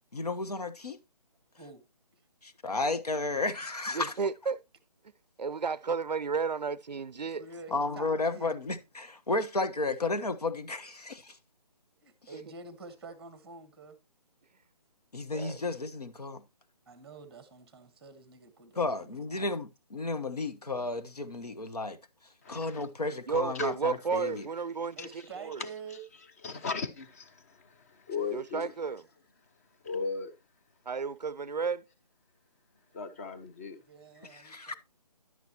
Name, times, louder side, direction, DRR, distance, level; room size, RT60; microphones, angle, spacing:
voice 1, 0.1-1.0 2.4-4.1 7.7-11.4 15.1-16.4 18.7-22.0 22.5-24.5 34.3-34.7, left 3 dB, 70° left, 1.2 m, -33 dB
voice 2, 3.9-4.6 5.4-7.4 15.3-15.6 23.3-25.0 25.4-25.6 28.3-29.0 30.9-31.8, right 5 dB, 85° right, 0.5 m, -32 dB
voice 3, 7.3-8.5 12.0-14.0 16.9-19.6 25.0-26.0 26.4-26.5 33.8-34.7, right 4 dB, 5° right, 1.1 m, -47 dB
voice 4, 22.4-22.9 23.5-23.7 25.0-25.1 26.4-28.7 29.8-30.3 32.9-33.8, left 4 dB, 20° left, 0.8 m, -37 dB
11.0 x 9.4 x 3.0 m
figure-of-eight pair, 150°, 21 cm